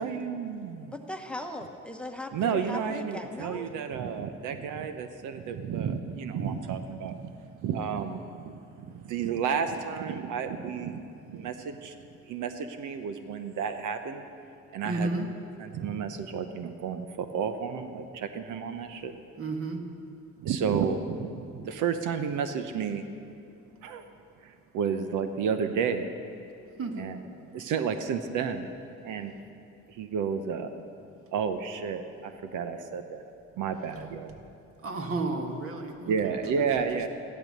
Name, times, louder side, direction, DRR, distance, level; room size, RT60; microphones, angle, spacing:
voice 1, 0.0-0.9 2.3-7.3 7.6-8.5 8.8-11.0 11.3-11.9 12.3-14.2 14.7-15.1 15.6-19.2 20.4-23.0 23.8-24.0 24.4-26.1 27.0-27.2 27.5-28.7 29.0-29.3 29.9-30.7 31.3-33.2 33.6-34.3 36.1-37.1, right 6 dB, 85° right, 8 dB, 0.9 m, -31 dB
voice 2, 0.9-3.7, left 1 dB, 5° left, 5 dB, 1.1 m, -38 dB
voice 3, 14.8-15.3 19.4-19.8 26.8-27.1 34.8-36.8, right 2 dB, 45° right, 4 dB, 1.8 m, -32 dB
15.0 x 12.0 x 6.6 m, 2.6 s
cardioid pair, 90°, 30 cm